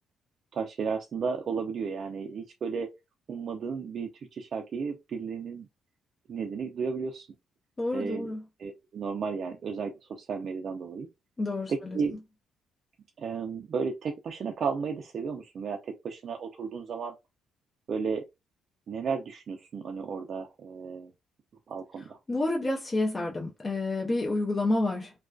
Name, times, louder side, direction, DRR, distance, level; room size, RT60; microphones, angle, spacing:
voice 1, 0.5-2.9 3.3-5.7 6.3-7.3 7.9-8.3 8.6-11.1 11.7-12.1 13.2-17.1 17.9-18.2 18.9-21.1 21.7-22.2, right 5 dB, 55° right, 0.4 m, -33 dB
voice 2, 7.8-8.4 11.4-12.0 22.3-25.1, left 2 dB, 30° left, 0.4 m, -29 dB
2.4 x 2.2 x 2.2 m
cardioid pair, 90°, 0 cm